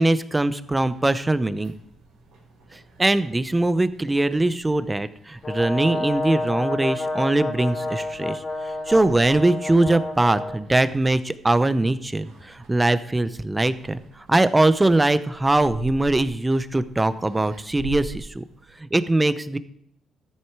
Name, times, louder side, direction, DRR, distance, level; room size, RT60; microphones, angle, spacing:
voice 1, 0.0-1.7 2.7-8.4 8.9-18.4 18.8-19.6, right 2 dB, 15° right, 14 dB, 0.7 m, -21 dB
sound 1, 0.6-18.8, right 2 dB, 90° right, 4.0 m, -46 dB
Brass instrument, 5.4-10.6, left 2 dB, 35° left, 2.2 m, -29 dB
13.5 x 7.9 x 4.7 m, 0.76 s
cardioid pair, 90°, 0 cm